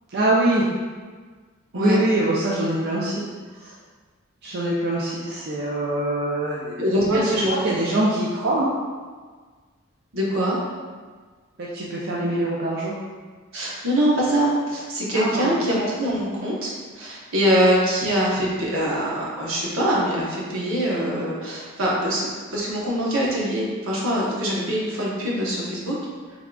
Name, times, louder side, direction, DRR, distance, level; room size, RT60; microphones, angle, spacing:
voice 1, 0.1-0.7 1.7-3.1 3.6-3.7 4.4-6.8 7.1-8.7 11.6-12.9 15.1-15.5, right 1 dB, 50° right, -5 dB, 0.4 m, -24 dB
voice 2, 6.8-7.8 10.1-10.6 13.5-22.3 22.5-26.0, equal, 80° right, -5 dB, 0.9 m, -23 dB
3.6 x 3.5 x 2.3 m, 1.5 s
head